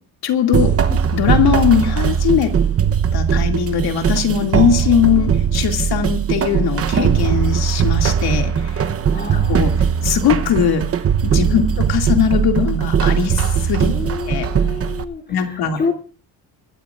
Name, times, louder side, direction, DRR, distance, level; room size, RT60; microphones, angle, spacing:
voice 1, 0.2-2.5 3.1-8.7 9.3-9.7 10.0-10.8 11.2-13.9 14.3-14.5 15.3-15.8, left 8 dB, 70° left, 4 dB, 2.4 m, -19 dB
sound 1, 0.5-15.0, right 7 dB, 35° right, 0.8 m, -19 dB
voice 2, 9.1-9.6 11.4-11.6 13.9-15.9, left 4 dB, 25° left, 1 dB, 3.0 m, -28 dB
23.5 x 13.5 x 2.5 m, 0.39 s
cardioid pair, 130°, 40 cm